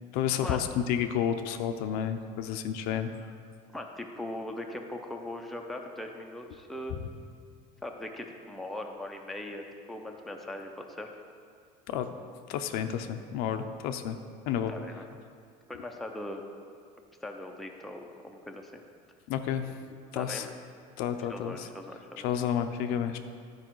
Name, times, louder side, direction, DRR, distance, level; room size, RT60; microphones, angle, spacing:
voice 1, 0.1-3.1 11.9-12.1 12.5-14.2 14.5-14.7 19.3-19.8 20.1-20.5 21.0-21.7 22.2-23.2, left 9 dB, 70° left, 8 dB, 0.6 m, -30 dB
voice 2, 3.7-7.0 7.8-11.1 14.7-15.0 15.7-16.4 17.2-18.7 20.1-20.5 21.3-22.3, left 1 dB, ahead, 2 dB, 0.6 m, -40 dB
11.5 x 4.8 x 4.6 m, 2.2 s
cardioid pair, 145°, 16 cm